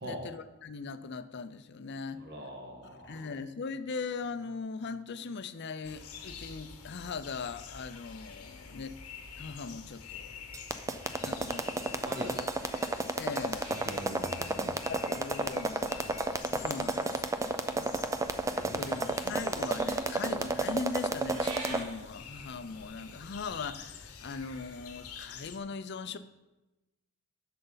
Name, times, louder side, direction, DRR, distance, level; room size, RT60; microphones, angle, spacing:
voice 1, 0.0-2.2 3.1-9.0 9.4-10.4 11.2-12.0 13.1-13.7 14.0-14.1 14.9-15.9 16.4-17.3 18.6-26.2, left 4 dB, 50° left, 12 dB, 0.5 m, -40 dB
voice 2, 2.1-3.3 12.0-12.3 13.7-14.8 17.6-19.2, equal, 50° right, 1 dB, 1.7 m, -43 dB
sound 1, 5.8-25.6, left 6 dB, 90° left, 1.0 m, -48 dB
sound 2, 10.5-21.8, right 2 dB, 15° right, 0.4 m, -31 dB
Purr / Meow, 13.6-16.8 17.8-23.4, right 2 dB, 75° right, 1.7 m, -50 dB
11.0 x 6.6 x 4.0 m, 1.0 s
head